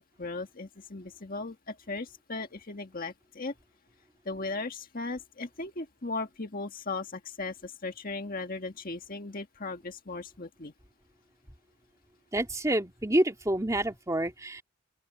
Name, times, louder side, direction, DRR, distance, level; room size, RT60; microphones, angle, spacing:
voice 1, 0.2-3.5 4.2-10.7, left 3 dB, 45° left, 1.7 m, -37 dB
voice 2, 12.3-14.6, right 1 dB, 15° right, 2.5 m, -28 dB
open air
head